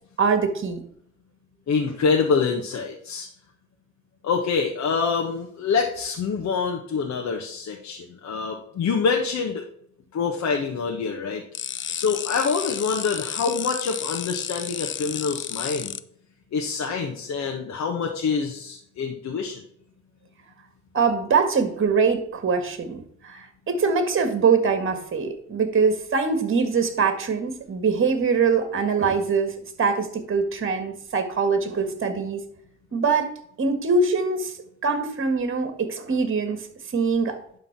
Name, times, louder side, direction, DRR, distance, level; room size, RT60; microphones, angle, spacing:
voice 1, 0.2-0.8 20.9-32.4 32.9-33.3 33.6-34.5 34.8-36.6 36.9-37.4, right 5 dB, 45° right, 8 dB, 1.8 m, -23 dB
voice 2, 1.7-3.3 4.2-9.6 10.1-11.4 11.9-15.9 16.5-19.6, left 5 dB, 65° left, 1 dB, 1.4 m, -26 dB
sound 1, 11.5-16.0, left 9 dB, 40° left, 0.5 m, -32 dB
11.0 x 3.8 x 5.9 m, 0.68 s
cardioid pair, 90°, 30 cm